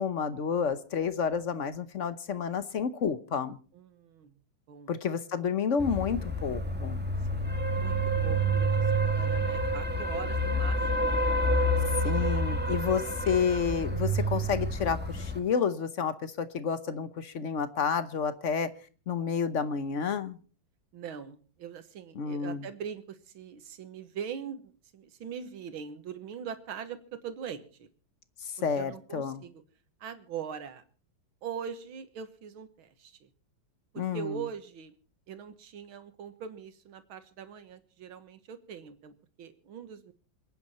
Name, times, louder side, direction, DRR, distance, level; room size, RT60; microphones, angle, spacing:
voice 1, 0.0-3.6 4.9-7.0 12.0-18.7 19.1-20.4 22.2-22.7 28.4-29.4 34.0-34.4, left 6 dB, 50° left, 13 dB, 1.0 m, -30 dB
voice 2, 3.7-4.4 4.7-4.9 7.3-11.5 20.9-27.9 28.8-29.6 30.0-30.8 31.4-33.3 33.9-34.9 35.3-40.1, right 7 dB, 80° right, 10 dB, 2.2 m, -42 dB
sound 1, 5.8-15.4, right 1 dB, 5° right, 1.5 m, -28 dB
27.5 x 9.6 x 4.3 m, 0.40 s
omnidirectional pair, 2.2 m